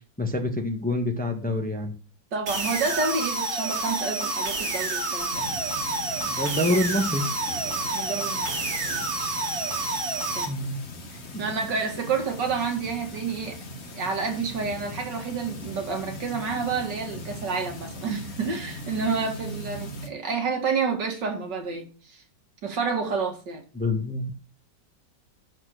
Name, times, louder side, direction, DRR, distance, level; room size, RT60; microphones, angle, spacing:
voice 1, 0.2-1.9 6.2-7.3 10.5-10.8 11.3-11.4 23.7-24.3, left 1 dB, 5° left, 1.3 m, -26 dB
voice 2, 2.3-5.4 7.9-9.3 10.4-10.5 11.1-13.6 13.9-22.2 22.6-23.6, right 5 dB, 65° right, 2.4 m, -29 dB
sound 1, 2.5-10.5, right 2 dB, 85° right, 3.3 m, -29 dB
sound 2, 5.3-20.1, left 1 dB, 40° left, 1.5 m, -40 dB
11.0 x 4.4 x 6.6 m
omnidirectional pair, 2.1 m